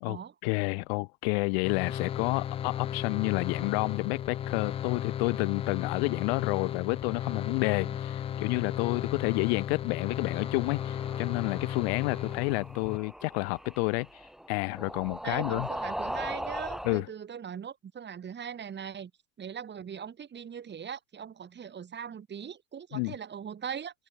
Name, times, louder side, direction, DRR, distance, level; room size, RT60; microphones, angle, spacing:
voice 1, 0.0-14.1 14.5-15.7 16.8-17.1 22.9-23.1, left 32 dB, 45° left, 0.7 m, -30 dB
sound 1, 1.6-13.0, left 10 dB, 15° left, 0.4 m, -35 dB
sound 2, 10.3-17.0, equal, ahead, 1.1 m, -40 dB
voice 2, 15.2-19.1 19.4-24.1, right 8 dB, 25° right, 3.7 m, -40 dB
figure-of-eight pair, 85°, 42 cm